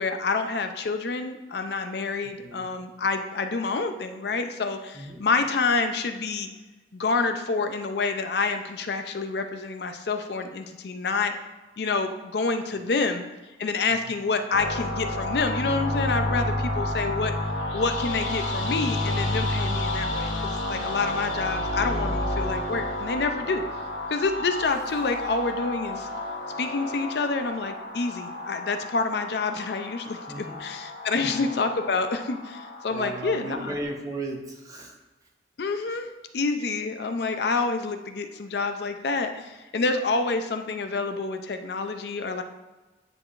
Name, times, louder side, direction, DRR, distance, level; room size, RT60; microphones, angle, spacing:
voice 1, 0.0-6.5 6.9-11.4 11.8-13.3 13.6-17.4 17.7-23.6 24.1-26.1 26.6-33.7 35.6-36.1 36.3-42.4, left 4 dB, 65° left, 7 dB, 0.5 m, -28 dB
voice 2, 2.2-2.7 4.9-5.2 13.9-14.1 16.8-16.9 30.3-30.6 31.2-31.4 32.9-35.0 35.9-36.0, right 2 dB, 20° right, 1 dB, 0.8 m, -36 dB
sound 1, 14.5-33.8, left 1 dB, 85° left, 1.0 m, -31 dB
9.5 x 4.8 x 2.5 m, 1.2 s
head